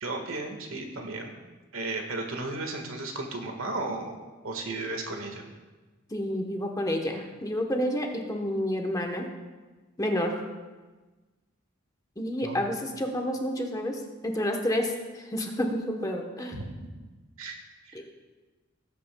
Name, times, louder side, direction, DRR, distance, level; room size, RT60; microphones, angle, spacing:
voice 1, 0.0-1.3 1.7-5.4 12.4-12.7 16.5-16.6 17.4-17.6 17.8-18.0, right 2 dB, 80° right, 3 dB, 1.6 m, -34 dB
voice 2, 6.1-9.3 10.0-10.4 12.2-16.6 17.9-18.1, equal, 15° left, 2 dB, 0.9 m, -29 dB
19.0 x 8.4 x 2.2 m, 1.3 s
head